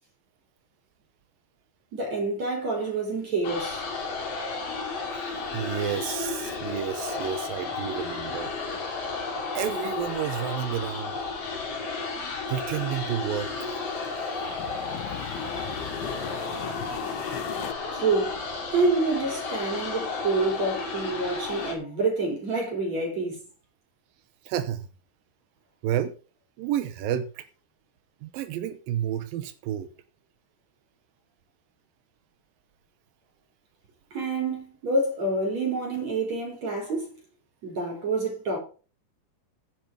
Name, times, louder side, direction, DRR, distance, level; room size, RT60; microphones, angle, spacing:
voice 1, 1.9-3.9 14.2-14.3 17.9-18.4 18.7-23.4 34.1-37.2 37.6-38.6, right 3 dB, 40° right, 4.3 m, -27 dB
sound 1, 3.4-21.7, left 4 dB, 40° left, 3.2 m, -33 dB
voice 2, 5.5-8.5 9.5-11.2 12.5-13.7 24.4-24.9 25.8-26.1 26.6-27.5 28.2-29.9, right 10 dB, 85° right, 2.0 m, -30 dB
sound 2, 12.5-17.7, left 12 dB, 85° left, 3.5 m, -41 dB
10.5 x 8.1 x 5.2 m
omnidirectional pair, 5.3 m